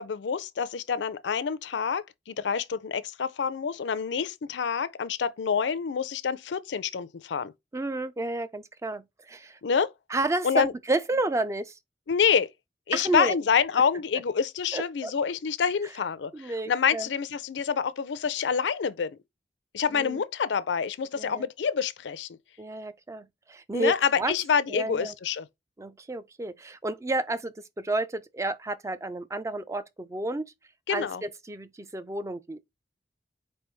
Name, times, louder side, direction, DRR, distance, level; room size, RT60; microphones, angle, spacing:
voice 1, 0.0-7.5 9.6-9.9 10.4-10.7 12.1-12.5 12.9-19.1 19.7-22.3 23.7-25.5 30.9-31.2, left 6 dB, 80° left, 0.5 m, -27 dB
voice 2, 7.7-9.6 10.1-11.7 12.9-13.4 14.7-15.1 16.3-17.1 19.9-20.2 21.1-21.5 22.6-24.3 24.7-25.1 25.8-30.5 30.9-32.6, right 2 dB, 15° right, 0.4 m, -31 dB
4.5 x 3.3 x 3.1 m
head